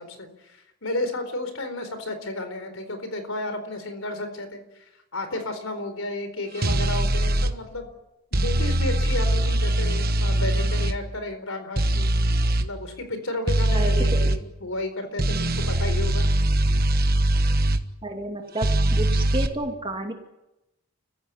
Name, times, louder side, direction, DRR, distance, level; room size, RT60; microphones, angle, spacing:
voice 1, 0.0-4.6 5.1-7.9 8.3-12.1 12.6-16.3, left 2 dB, 65° left, 8 dB, 4.3 m, -32 dB
sound 1, 6.6-7.5 8.3-11.0 11.8-12.7 13.5-14.4 15.2-17.8 18.6-19.5, right 1 dB, 40° right, 1.3 m, -22 dB
voice 2, 13.7-14.3 18.0-20.1, right 1 dB, 20° right, 3 dB, 2.5 m, -31 dB
29.5 x 15.5 x 9.6 m, 0.98 s
head